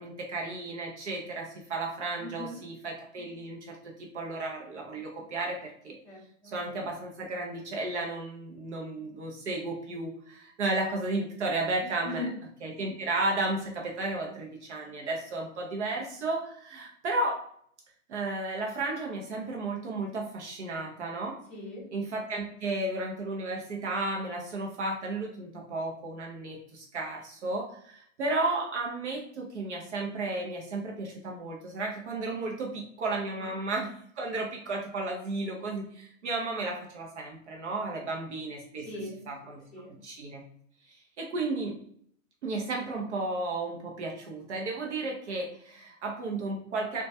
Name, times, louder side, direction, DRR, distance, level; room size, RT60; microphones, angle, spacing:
voice 1, 0.0-6.0 6.4-12.3 12.6-17.4 18.1-21.4 21.9-38.9 39.3-39.6 40.0-40.4 40.9-41.8 42.4-47.0, right 2 dB, 60° right, 0 dB, 0.6 m, -33 dB
voice 2, 2.2-2.6 6.0-6.5 12.0-12.3 21.5-21.8 33.3-33.5 38.8-39.2 39.7-39.9, left 2 dB, 5° right, -14 dB, 0.6 m, -39 dB
2.2 x 2.2 x 2.6 m, 0.65 s
hypercardioid pair, 170°, 39 cm